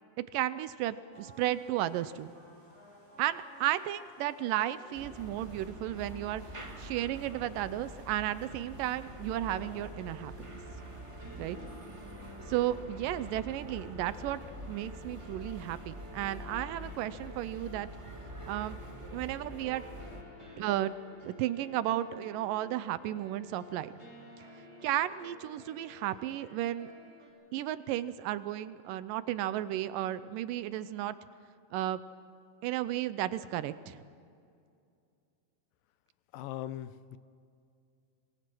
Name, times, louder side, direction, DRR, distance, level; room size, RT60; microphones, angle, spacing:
voice 1, 0.3-2.3 3.2-6.4 6.8-10.6 11.4-11.6 12.5-14.4 14.7-17.9 18.5-18.8 19.1-19.8 20.6-20.9 21.2-23.9 24.8-26.9 27.5-31.2 31.7-32.0 32.6-34.0, right 13 dB, 80° right, 14 dB, 2.2 m, -33 dB
sound 1, 1.1-11.8, right 1 dB, 35° left, 6.9 m, -58 dB
sound 2, 4.9-20.2, right 1 dB, 25° right, 0.6 m, -45 dB
sound 3, 9.5-27.3, left 1 dB, 10° right, 5.4 m, -53 dB
voice 2, 36.3-37.2, left 12 dB, 80° left, 14 dB, 2.3 m, -40 dB
27.5 x 20.5 x 6.2 m, 2.4 s
omnidirectional pair, 4.1 m